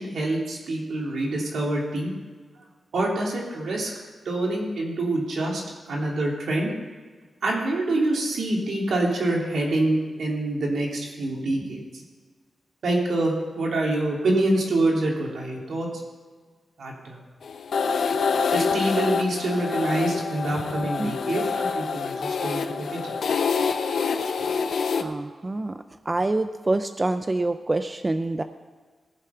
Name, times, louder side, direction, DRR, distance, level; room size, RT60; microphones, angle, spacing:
voice 1, 0.0-2.1 2.9-3.9 4.2-6.7 7.4-12.0 12.8-15.9 16.8-17.2 18.5-23.2, right 2 dB, 75° right, -2 dB, 3.1 m, -26 dB
sound 1, 17.4-25.0, left 5 dB, 75° left, 0.8 m, -26 dB
voice 2, 25.0-25.8 26.1-28.4, right 2 dB, 25° right, 9 dB, 0.5 m, -26 dB
18.5 x 7.3 x 5.7 m, 1.5 s
wide cardioid pair, 110°, 0 cm